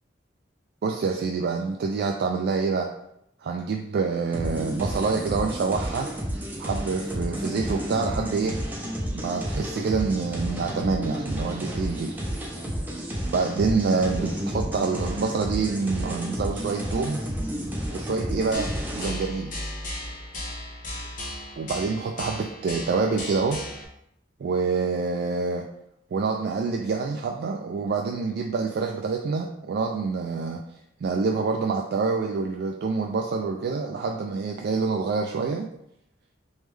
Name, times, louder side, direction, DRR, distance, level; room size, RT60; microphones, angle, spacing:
voice 1, 0.8-2.9 3.4-6.1 6.6-8.6 9.1-12.2 13.3-17.2 17.9-19.6 21.6-23.6 24.4-25.6 26.1-30.6 31.0-35.7, right 4 dB, 60° right, 2 dB, 0.3 m, -27 dB
sound 1, 4.3-19.1, equal, 10° right, 0.6 m, -31 dB
sound 2, 18.5-23.8, left 1 dB, 50° left, 0.8 m, -36 dB
3.5 x 3.1 x 3.2 m, 0.78 s
head